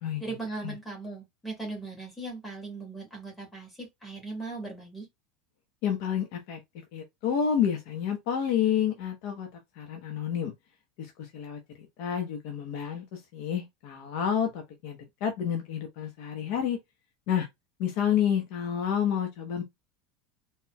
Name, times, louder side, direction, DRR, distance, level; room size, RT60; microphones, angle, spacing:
voice 1, 0.2-5.1, right 3 dB, 10° left, 2.2 m, -38 dB
voice 2, 5.8-6.6 6.9-9.5 9.8-10.5 11.0-11.6 12.0-16.8 17.3-17.5 17.8-19.6, left 8 dB, 50° left, 1.0 m, -29 dB
4.3 x 3.5 x 2.3 m
supercardioid pair, 175°, 0 cm